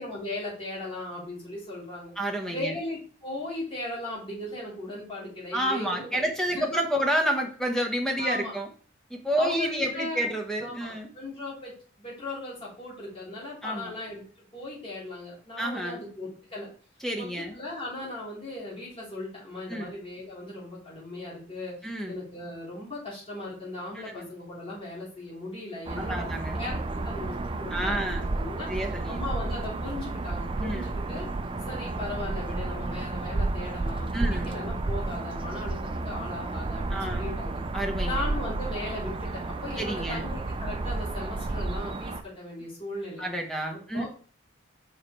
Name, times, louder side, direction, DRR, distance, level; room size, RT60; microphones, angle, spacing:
voice 1, 0.0-2.1 2.5-6.7 8.2-8.5 9.3-10.3 10.6-14.2 14.5-16.7 17.1-17.2 17.5-21.8 22.1-26.2 26.5-28.7 29.0-31.3 31.6-37.6 38.0-43.2 43.9-44.1, left 2 dB, 30° left, -7 dB, 3.8 m, -37 dB
voice 2, 2.2-2.7 5.5-8.7 9.1-11.1 13.6-13.9 15.6-16.0 17.0-17.6 19.7-19.9 21.8-22.2 24.0-24.3 26.0-26.5 27.7-28.3 28.7-29.2 30.6-30.9 34.1-34.5 36.9-37.2 37.7-38.2 39.8-40.2 43.2-44.0, right 1 dB, 5° left, 2 dB, 1.0 m, -29 dB
sound 1, 25.8-42.2, right 2 dB, 25° right, 0.4 m, -32 dB
5.7 x 4.9 x 4.5 m, 0.43 s
head